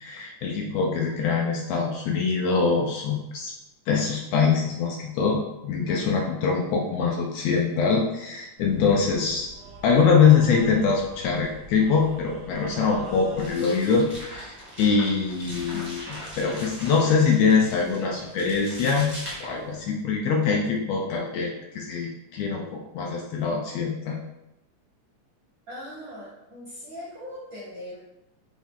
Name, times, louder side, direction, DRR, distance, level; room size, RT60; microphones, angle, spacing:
voice 1, 0.0-3.5 3.9-9.5 9.8-16.0 16.4-19.1 19.4-24.2, left 5 dB, 80° left, 0 dB, 1.6 m, -23 dB
sound 1, 8.6-13.6, right 2 dB, 85° right, 1.1 m, -44 dB
sound 2, 13.4-19.8, equal, 10° right, 0.5 m, -40 dB
voice 2, 25.7-28.0, left 1 dB, 65° right, -7 dB, 1.2 m, -40 dB
6.1 x 2.4 x 3.5 m, 0.90 s
omnidirectional pair, 3.3 m